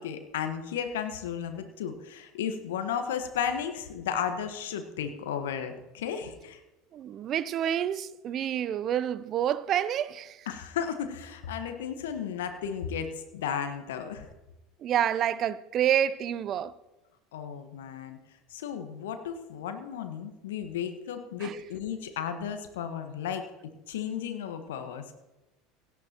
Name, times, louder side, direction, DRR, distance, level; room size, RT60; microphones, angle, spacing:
voice 1, 0.0-6.6 10.5-14.3 17.3-18.2 18.5-23.5 23.9-25.1, left 8 dB, 70° left, 1.3 m, -34 dB
voice 2, 6.9-10.5 14.8-16.7 21.4-21.6, right 10 dB, 45° right, 0.5 m, -28 dB
17.0 x 12.0 x 2.9 m
hypercardioid pair, 75°, 0 cm